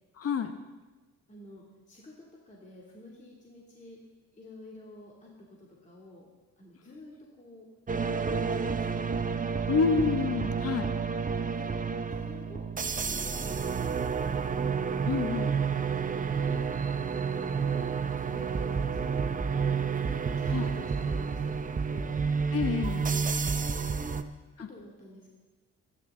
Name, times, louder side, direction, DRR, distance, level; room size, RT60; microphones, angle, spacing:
voice 1, 0.2-0.5 9.7-10.9 15.1-15.5 20.5-20.7 22.5-23.2 24.6-24.7, left 6 dB, 50° left, 8 dB, 1.0 m, -28 dB
voice 2, 1.3-2.1 2.5-4.0 4.3-6.3 6.6-7.7 8.0-8.9 11.5-11.7 12.1-12.7 13.1-14.5 15.0-17.0 17.8-22.2 24.0-25.3, left 1 dB, 25° left, -3 dB, 2.7 m, -50 dB
sound 1, 7.9-24.2, right 5 dB, 25° right, 0.8 m, -30 dB
24.5 x 10.5 x 3.8 m, 1.2 s
cardioid pair, 90°, 30 cm